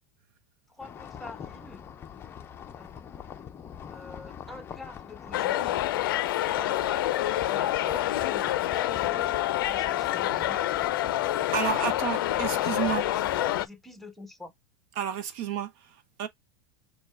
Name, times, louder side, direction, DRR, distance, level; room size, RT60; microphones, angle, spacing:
sound 1, 0.8-13.7, left 8 dB, 20° left, 0.5 m, -44 dB
voice 1, 0.8-1.9 2.8-3.0 3.9-5.8 6.4-10.8 11.7-11.9 12.4-14.5, left 2 dB, ahead, 1.0 m, -45 dB
sound 2, 5.3-13.7, left 14 dB, 80° left, 0.4 m, -27 dB
voice 2, 11.5-13.0 15.0-16.3, right 9 dB, 55° right, 0.7 m, -31 dB
4.4 x 2.2 x 3.3 m
supercardioid pair, 130°, 11 cm